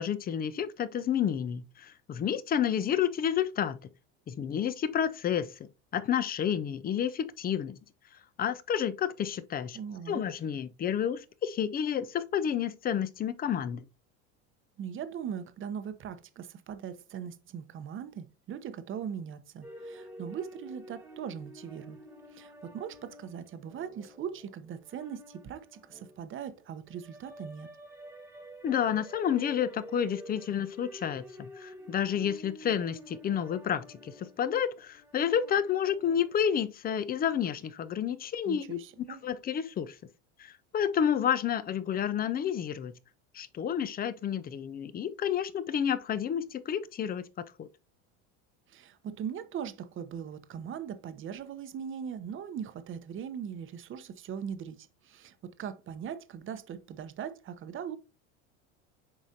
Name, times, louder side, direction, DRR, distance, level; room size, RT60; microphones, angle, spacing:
voice 1, 0.0-3.8 4.3-7.8 8.4-9.8 10.1-13.8 28.6-38.8 39.2-40.0 40.4-42.9 43.3-47.2 47.6-47.7, left 9 dB, 25° left, 0.5 m, -30 dB
voice 2, 9.7-10.2 14.8-22.0 22.3-27.7 38.4-39.2 48.7-58.0, right 8 dB, 35° right, 0.9 m, -40 dB
sound 1, 19.6-36.6, equal, 5° right, 1.4 m, -49 dB
7.5 x 4.9 x 2.8 m
supercardioid pair, 110°, 35 cm